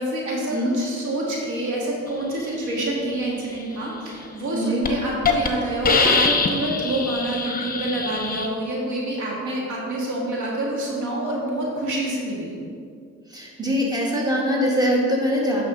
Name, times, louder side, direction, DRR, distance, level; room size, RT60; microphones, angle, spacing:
voice 1, 0.0-12.5, right 1 dB, 75° right, -3 dB, 2.2 m, -27 dB
Hiss, 4.3-4.5 4.8-4.9 5.2-5.5 5.8-8.5, left 4 dB, 30° left, 1.0 m, -22 dB
voice 2, 4.5-4.8 13.3-15.6, equal, 15° right, -3 dB, 1.9 m, -22 dB
9.0 x 6.2 x 4.0 m, 2.2 s
cardioid pair, 90°, 30 cm